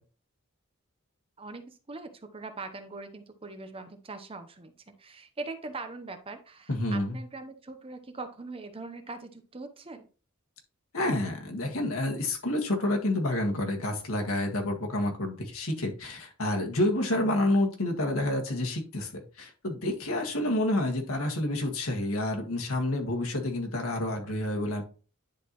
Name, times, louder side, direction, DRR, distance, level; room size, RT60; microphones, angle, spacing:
voice 1, 1.4-10.1, right 3 dB, 25° right, 8 dB, 0.8 m, -42 dB
voice 2, 6.7-7.2 10.9-24.8, left 1 dB, 85° left, 2 dB, 1.7 m, -29 dB
10.5 x 4.1 x 3.0 m, 0.37 s
head